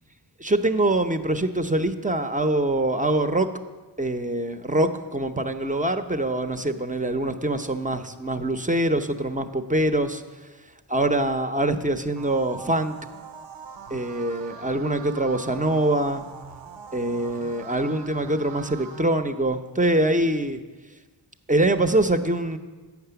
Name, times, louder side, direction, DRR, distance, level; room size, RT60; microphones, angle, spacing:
voice 1, 0.4-3.5 4.0-10.2 10.9-12.9 13.9-16.2 16.9-20.6 21.5-22.6, right 1 dB, 15° right, 8 dB, 0.6 m, -24 dB
sound 1, 12.2-19.0, right 5 dB, 75° right, 0.8 m, -42 dB
8.3 x 5.8 x 6.9 m, 1.3 s
cardioid pair, 40°, 46 cm